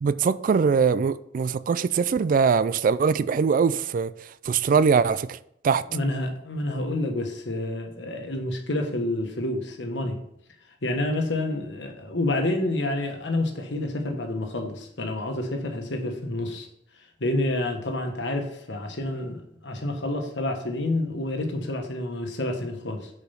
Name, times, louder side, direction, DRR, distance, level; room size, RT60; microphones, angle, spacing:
voice 1, 0.0-4.1 4.5-5.4 5.6-5.8, right 5 dB, 50° right, 0.3 m, -22 dB
voice 2, 5.9-10.2 10.8-16.7 17.2-23.1, left 1 dB, 80° left, 1.3 m, -28 dB
6.7 x 4.8 x 5.7 m
head